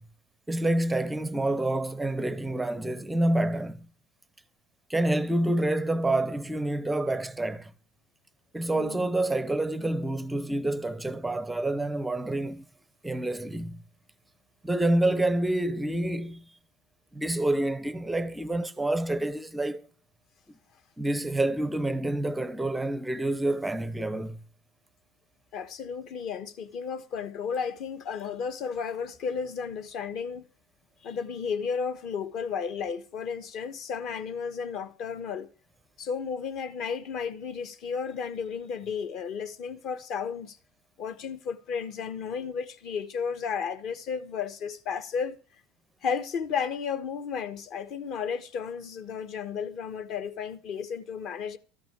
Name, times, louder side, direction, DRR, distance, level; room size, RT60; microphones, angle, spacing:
voice 1, 0.5-3.9 4.9-7.7 8.5-12.6 13.0-13.8 14.6-16.4 17.1-19.8 21.0-24.4, right 1 dB, 5° right, 0.5 m, -28 dB
voice 2, 8.7-9.1 25.5-30.4 31.0-35.5 36.0-40.6 41.0-45.4 46.0-51.6, left 6 dB, 50° left, 1.2 m, -33 dB
13.5 x 6.1 x 8.7 m
supercardioid pair, 135°, 0 cm